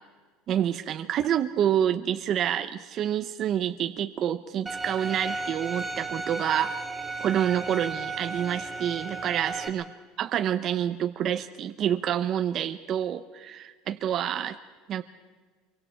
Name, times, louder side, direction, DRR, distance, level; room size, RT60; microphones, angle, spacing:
voice 1, 0.5-6.8 7.2-9.8 10.2-14.6 14.9-15.0, right 10 dB, 40° right, 8 dB, 0.8 m, -28 dB
Bowed string instrument, 4.7-9.7, right 3 dB, 10° right, 2.8 m, -34 dB
26.0 x 23.5 x 4.5 m, 1.4 s
cardioid pair, 145°, 0 cm